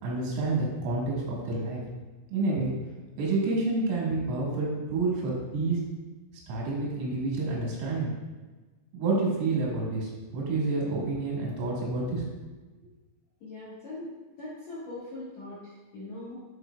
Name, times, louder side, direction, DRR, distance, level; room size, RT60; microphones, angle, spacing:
voice 1, 0.0-1.8 2.3-2.7 3.2-5.8 6.5-8.1 8.9-12.2, right 3 dB, 90° right, -4 dB, 4.2 m, -29 dB
voice 2, 13.4-16.4, left 2 dB, 80° left, -10 dB, 1.6 m, -41 dB
11.0 x 4.4 x 2.3 m, 1.2 s
omnidirectional pair, 5.6 m